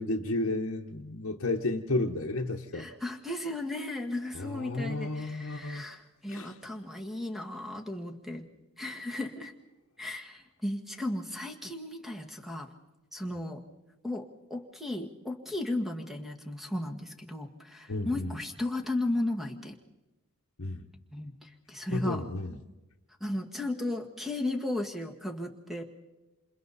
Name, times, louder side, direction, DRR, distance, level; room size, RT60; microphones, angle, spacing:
voice 1, 0.0-2.9 4.3-5.8 6.3-6.5 17.9-18.4 20.6-20.8 21.9-22.6, left 2 dB, 60° left, 0 dB, 1.0 m, -32 dB
voice 2, 2.7-8.4 8.8-9.5 10.0-12.7 13.1-13.6 14.0-19.8 21.1-22.2 23.2-25.8, left 1 dB, ahead, 4 dB, 1.6 m, -35 dB
27.5 x 27.5 x 4.1 m, 1.1 s
head